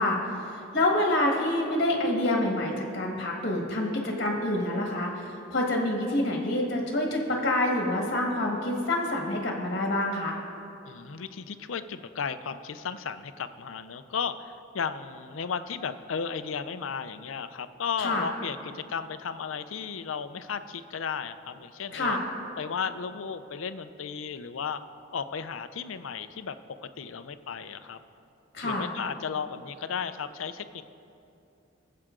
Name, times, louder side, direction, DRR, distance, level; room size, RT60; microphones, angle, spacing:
voice 1, 0.0-10.4 18.0-18.2 21.9-22.2 28.5-28.9, left 1 dB, 50° left, 0 dB, 1.4 m, -27 dB
voice 2, 10.9-22.2 22.6-24.8 25.1-26.6 27.0-28.0 28.6-30.8, left 6 dB, 80° left, 11 dB, 0.5 m, -34 dB
20.0 x 7.7 x 3.8 m, 2.7 s
head